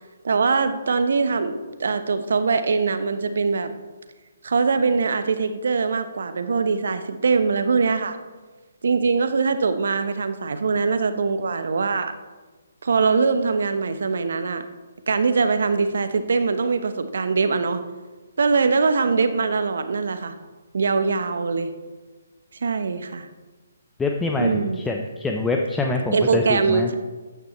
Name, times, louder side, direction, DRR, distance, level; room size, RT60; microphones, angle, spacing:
voice 1, 0.2-3.7 4.4-8.2 8.8-12.1 12.8-14.6 15.1-17.8 18.4-20.3 20.7-21.7 22.6-23.3 24.4-24.8 26.1-26.9, right 4 dB, 65° right, 10 dB, 1.0 m, -22 dB
voice 2, 24.0-26.9, left 3 dB, 10° left, 2 dB, 0.7 m, -25 dB
13.5 x 9.3 x 3.1 m, 1.3 s
figure-of-eight pair, 140°, 0 cm